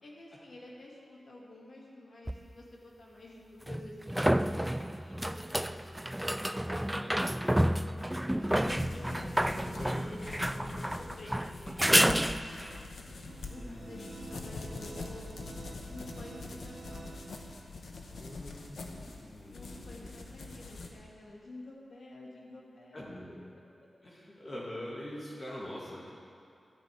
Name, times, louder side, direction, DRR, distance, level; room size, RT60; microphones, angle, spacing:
voice 1, 0.0-7.2 8.3-12.3 13.4-15.3 15.9-17.2 19.5-23.0 24.0-24.1, left 1 dB, 60° left, -4 dB, 2.5 m, -50 dB
sound 1, 2.3-2.4 3.7-12.8 16.2-16.3, right 1 dB, 10° right, 0.3 m, -30 dB
voice 2, 6.9-7.3 8.0-8.1 9.8-10.0 13.6-14.2 18.1-20.1 20.4-20.5 22.9-23.3 24.0-26.1, left 1 dB, 40° left, -6 dB, 2.5 m, -44 dB
sound 2, 8.6-20.9, left 3 dB, 80° left, 1.1 m, -44 dB
sound 3, 13.3-18.0, right 3 dB, 70° right, 0.8 m, -50 dB
13.0 x 6.0 x 8.6 m, 2.4 s
wide cardioid pair, 80°, 0 cm